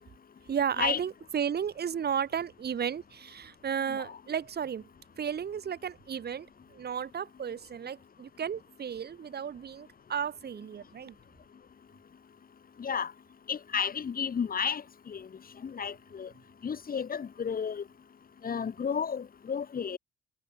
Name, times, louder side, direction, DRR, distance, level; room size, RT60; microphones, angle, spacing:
voice 1, 0.5-4.9 5.2-11.2, right 8 dB, 55° right, 7.1 m, -34 dB
voice 2, 12.8-13.1 13.5-15.3 15.6-16.3 16.6-17.8 18.4-20.0, left 6 dB, 45° left, 6.5 m, -32 dB
cardioid pair, 90°, 20 cm